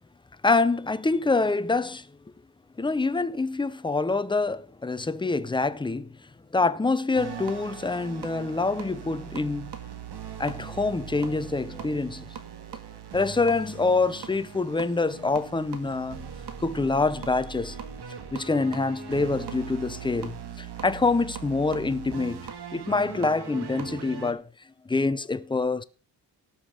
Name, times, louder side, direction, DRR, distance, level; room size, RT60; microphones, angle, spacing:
voice 1, 0.4-2.1 2.8-6.1 6.5-9.7 10.4-12.3 13.1-16.3 16.6-17.8 18.3-22.4 22.7-24.4 24.9-25.8, left 3 dB, 10° left, 0.6 m, -26 dB
sound 1, 7.1-24.3, right 7 dB, 80° right, 1.9 m, -40 dB
17.5 x 6.0 x 5.2 m
wide cardioid pair, 115°, 39 cm